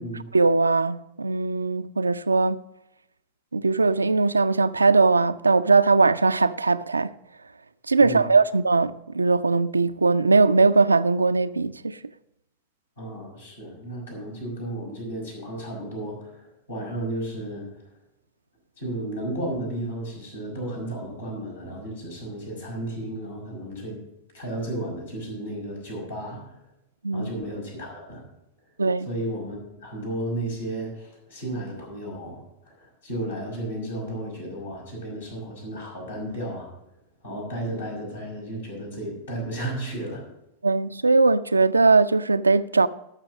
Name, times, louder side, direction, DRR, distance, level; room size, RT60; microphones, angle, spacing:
voice 1, 0.3-2.6 3.5-7.1 7.9-12.0 27.0-27.3 28.8-29.1 40.6-42.9, right 3 dB, 80° right, 0.4 m, -20 dB
voice 2, 8.0-8.3 13.0-17.7 18.8-24.0 24.3-26.6 27.1-28.2 29.0-36.7 37.2-40.3, right 1 dB, 70° left, 5.3 m, -33 dB
13.0 x 6.1 x 6.2 m
figure-of-eight pair, 90°, 0 cm